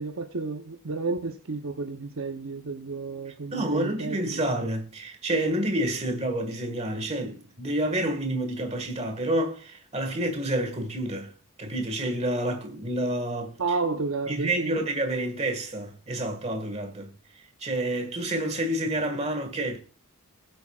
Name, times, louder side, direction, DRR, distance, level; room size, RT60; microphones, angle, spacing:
voice 1, 0.0-4.4 13.6-14.8, right 3 dB, 60° right, 0.8 m, -31 dB
voice 2, 3.5-11.3 11.6-13.5 14.3-17.1 17.6-19.8, right 1 dB, 30° right, 1.7 m, -29 dB
19.0 x 8.0 x 2.4 m
head